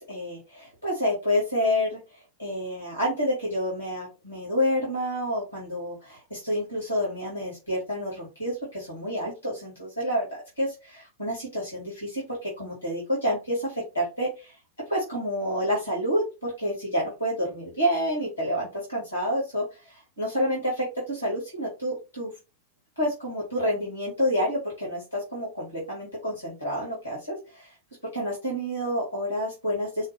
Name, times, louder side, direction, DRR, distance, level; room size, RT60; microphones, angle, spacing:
voice 1, 0.0-14.6 14.9-22.3 23.0-27.7 28.1-30.1, equal, 90° left, -4 dB, 2.0 m, -29 dB
5.4 x 2.2 x 3.3 m, 0.28 s
figure-of-eight pair, 90°, 0 cm